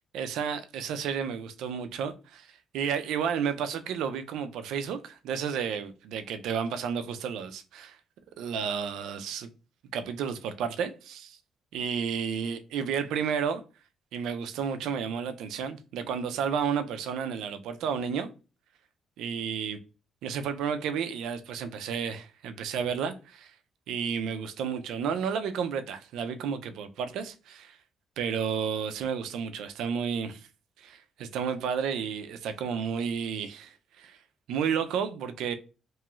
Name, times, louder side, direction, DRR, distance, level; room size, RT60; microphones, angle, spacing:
voice 1, 0.1-8.0 8.4-9.5 9.9-11.4 11.7-13.6 14.1-18.3 19.2-19.8 20.2-23.5 23.9-27.8 28.2-30.4 30.8-34.2 34.5-35.5, right 7 dB, 85° right, 0.4 m, -32 dB
3.0 x 2.3 x 3.0 m
cardioid pair, 90°, 0 cm